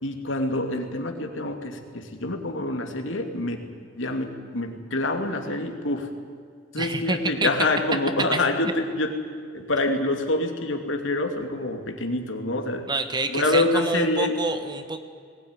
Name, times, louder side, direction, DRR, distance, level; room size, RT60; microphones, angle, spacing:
voice 1, 0.0-3.7 4.0-6.1 6.7-9.2 9.5-12.9 13.2-14.3, left 2 dB, 80° left, 4 dB, 2.6 m, -26 dB
voice 2, 6.8-7.5 8.3-8.4 12.9-15.0, right 2 dB, 25° right, 8 dB, 1.4 m, -28 dB
20.0 x 17.5 x 9.8 m, 2.1 s
head